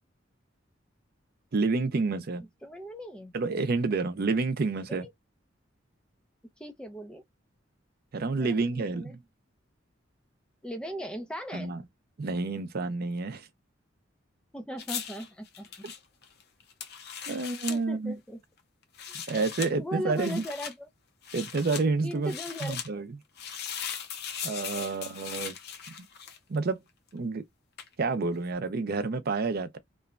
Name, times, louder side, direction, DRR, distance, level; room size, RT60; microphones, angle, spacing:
voice 1, 1.5-2.5 3.3-5.1 8.1-9.2 11.5-11.8 12.2-13.5 17.3-18.1 19.3-20.4 21.3-22.3 22.6-23.1 24.4-25.6 26.5-26.8 27.1-27.4 28.0-29.8, right 3 dB, 55° right, 0.5 m, -29 dB
voice 2, 2.4-3.4 4.9-5.1 6.6-7.2 8.4-9.2 10.6-11.7 14.5-15.7 17.2-17.4 17.7-18.4 19.1-19.2 19.8-20.9 22.0-22.8 24.7-25.2, equal, 5° left, 0.5 m, -39 dB
sound 1, 14.8-17.8 18.8-19.7 20.1-20.7 21.2-21.8 22.2-22.9 23.4-26.6 27.8-27.9, left 8 dB, 55° left, 0.6 m, -39 dB
3.0 x 2.2 x 2.4 m
head